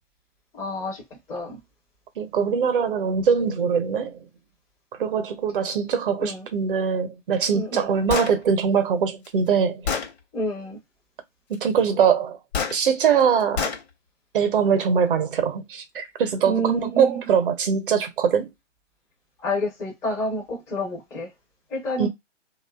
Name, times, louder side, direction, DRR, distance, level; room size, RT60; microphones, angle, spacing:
voice 1, 0.6-1.0 1.3-1.6 6.2-6.4 7.5-7.9 10.3-10.8 16.4-17.1 19.4-21.3 21.7-22.1, equal, 5° left, 0.5 m, -28 dB
voice 2, 2.2-4.2 5.0-9.9 11.5-12.4 12.7-13.7 14.3-18.5 22.0-22.1, right 7 dB, 45° right, 0.7 m, -22 dB
Gunshot gunfire, 8.1-8.3 9.2-9.3 9.9-10.1 12.5-12.8 13.6-13.8, left 6 dB, 60° left, 0.8 m, -26 dB
2.7 x 2.3 x 2.2 m
figure-of-eight pair, 135°, 36 cm